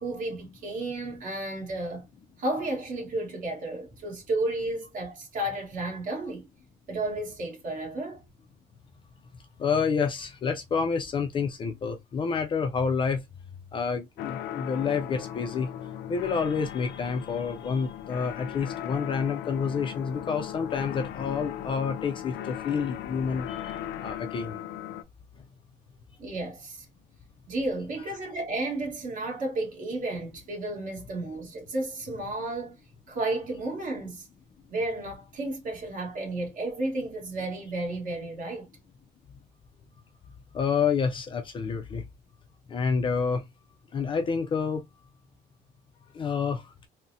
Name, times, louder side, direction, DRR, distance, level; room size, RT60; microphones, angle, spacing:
voice 1, 0.0-2.1 2.4-6.5 6.9-8.2 26.2-26.8 27.5-32.8 33.1-34.3 34.7-38.7, right 2 dB, 50° right, 1.4 m, -32 dB
voice 2, 9.6-13.2 13.7-15.7 16.1-24.6 40.5-42.0 42.7-43.4 43.9-44.9 46.1-46.7, left 5 dB, 30° left, 0.4 m, -28 dB
sound 1, 14.2-25.0, left 10 dB, 85° left, 0.5 m, -38 dB
3.8 x 2.1 x 2.7 m
cardioid pair, 170°, 18 cm